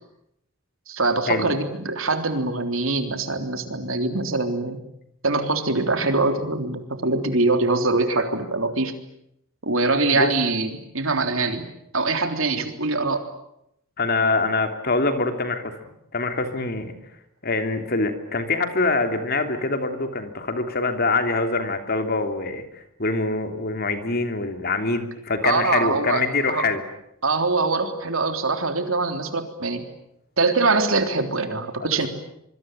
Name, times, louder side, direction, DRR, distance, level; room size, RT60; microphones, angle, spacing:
voice 1, 0.9-4.8 5.2-8.9 9.6-11.7 11.9-13.3 25.4-26.7 27.2-29.9 30.4-32.1, right 3 dB, 70° right, 7 dB, 3.5 m, -23 dB
voice 2, 14.0-15.7 16.1-16.9 17.4-26.8 31.8-32.1, left 3 dB, 45° left, 7 dB, 3.2 m, -24 dB
25.5 x 24.5 x 9.3 m, 0.79 s
head